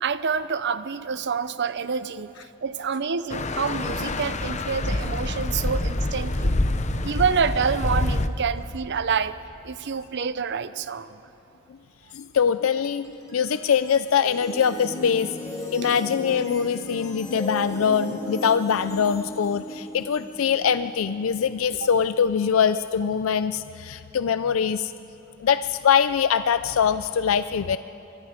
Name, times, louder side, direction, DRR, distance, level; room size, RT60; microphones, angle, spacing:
voice 1, 0.0-2.3 2.6-6.6 7.0-11.2, right 6 dB, 55° right, 14 dB, 0.7 m, -27 dB
sound 1, 3.3-8.3, left 2 dB, 35° left, 0.8 m, -26 dB
voice 2, 12.1-15.3 15.7-24.9 25.4-27.8, left 7 dB, 70° left, 13 dB, 0.4 m, -23 dB
sound 2, 13.0-22.3, equal, 15° left, 2.5 m, -36 dB
25.0 x 23.0 x 5.0 m, 2.9 s
head